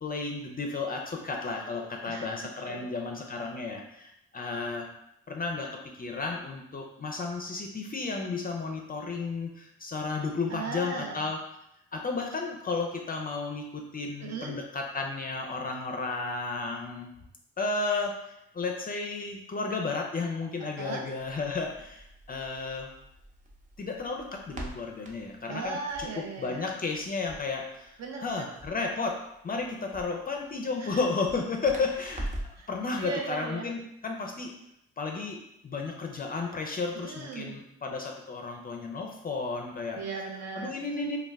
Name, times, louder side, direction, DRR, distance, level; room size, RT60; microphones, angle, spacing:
voice 1, 0.0-4.9 5.3-11.4 11.9-17.1 17.6-22.9 23.8-25.8 26.4-27.9 28.2-29.2 29.4-32.3 32.7-34.5 35.0-40.0 40.5-41.2, left 4 dB, 30° left, 2 dB, 0.4 m, -33 dB
voice 2, 10.5-11.2 14.2-14.5 20.8-21.0 25.5-26.6 28.0-28.4 30.8-31.0 32.6-32.7 33.0-33.7 36.9-37.6 40.0-40.7, right 4 dB, 60° right, 0 dB, 0.7 m, -37 dB
Crackle, 21.2-32.7, right 1 dB, 25° right, 0.6 m, -44 dB
2.2 x 2.1 x 3.4 m, 0.81 s
supercardioid pair, 55°, 31 cm